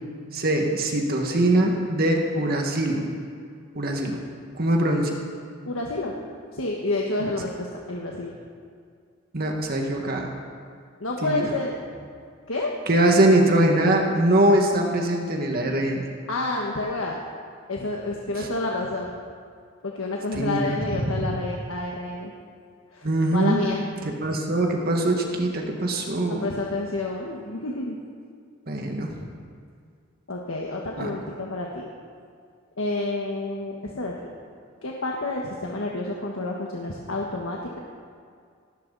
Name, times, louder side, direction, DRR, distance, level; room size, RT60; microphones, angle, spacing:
voice 1, 0.3-3.1 3.8-4.2 4.6-5.1 7.2-7.3 9.3-10.3 11.2-11.5 12.9-16.0 18.3-18.5 20.4-20.7 21.0-21.2 23.0-23.6 24.2-26.5 28.7-29.2 31.0-31.2, right 1 dB, 50° right, 1 dB, 1.9 m, -22 dB
voice 2, 5.7-6.1 6.5-8.3 11.0-11.7 12.5-12.7 16.3-17.2 17.7-19.1 19.8-22.3 22.9-23.8 26.3-28.0 30.3-31.9 32.8-34.1 34.8-37.8, left 2 dB, 85° left, -1 dB, 1.5 m, -29 dB
17.5 x 17.5 x 4.1 m, 2.2 s
head